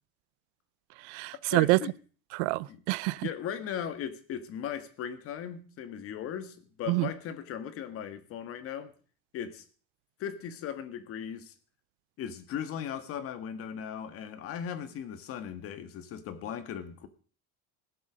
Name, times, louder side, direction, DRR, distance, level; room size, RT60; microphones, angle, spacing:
voice 1, 1.0-1.8 2.3-3.3 6.9-7.1, right 22 dB, 85° right, 0.6 m, -27 dB
voice 2, 1.5-1.9 2.7-2.8 3.2-8.9 9.3-9.6 10.2-11.5 12.2-17.1, left 9 dB, 45° left, 1.6 m, -38 dB
18.5 x 7.9 x 6.2 m
cardioid pair, 160°, 33 cm